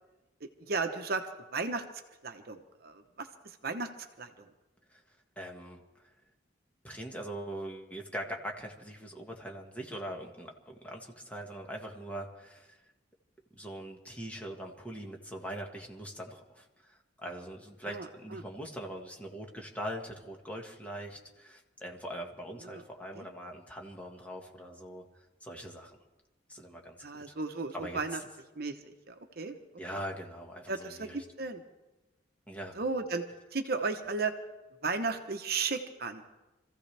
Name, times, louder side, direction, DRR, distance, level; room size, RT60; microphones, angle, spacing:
voice 1, 0.4-1.2 1.5-1.8 2.2-3.9 4.2-4.3 17.9-18.1 18.3-18.4 22.6-22.8 23.1-23.3 27.0-28.2 28.5-29.6 30.7-31.6 32.8-33.2 33.5-34.3 34.8-36.2, right 4 dB, 55° right, 6 dB, 1.0 m, -34 dB
voice 2, 5.3-6.1 6.8-12.8 13.5-25.0 25.4-26.0 26.5-27.0 27.3-27.4 27.7-28.2 29.8-31.2 32.5-32.8, right 1 dB, 10° left, 1 dB, 1.7 m, -42 dB
26.0 x 15.0 x 3.4 m, 1.0 s
head